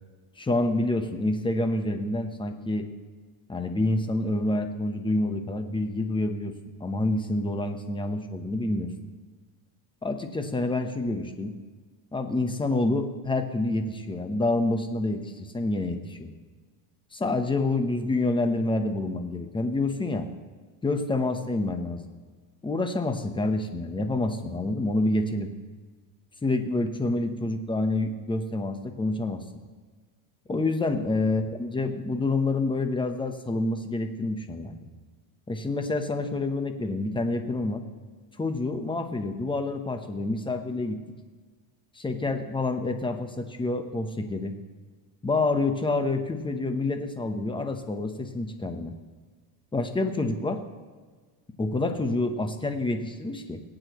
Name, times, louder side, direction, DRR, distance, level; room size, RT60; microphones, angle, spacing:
voice 1, 0.4-2.9 3.5-6.5 6.8-8.9 10.0-11.5 12.1-16.3 17.1-20.3 20.8-22.1 22.6-25.5 26.4-29.4 30.5-34.8 35.5-37.8 38.4-41.0 41.9-44.6 45.2-48.9 49.7-50.6 51.6-53.6, left 2 dB, 10° left, 7 dB, 1.0 m, -27 dB
18.5 x 8.9 x 3.1 m, 1.4 s
supercardioid pair, 120°, 50 cm